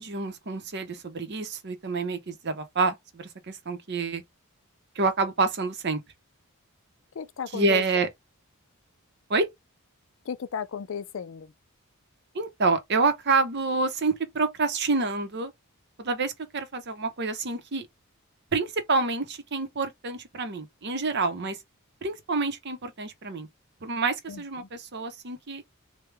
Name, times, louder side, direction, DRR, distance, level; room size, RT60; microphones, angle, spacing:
voice 1, 0.0-4.2 5.0-6.0 7.5-8.1 9.3-9.5 12.3-15.5 16.0-17.9 18.5-21.6 22.0-23.5 23.8-25.6, right 3 dB, 50° right, 0.7 m, -28 dB
voice 2, 7.2-8.1 10.3-11.5 24.3-24.7, left 7 dB, 60° left, 0.4 m, -35 dB
3.3 x 2.2 x 3.2 m
head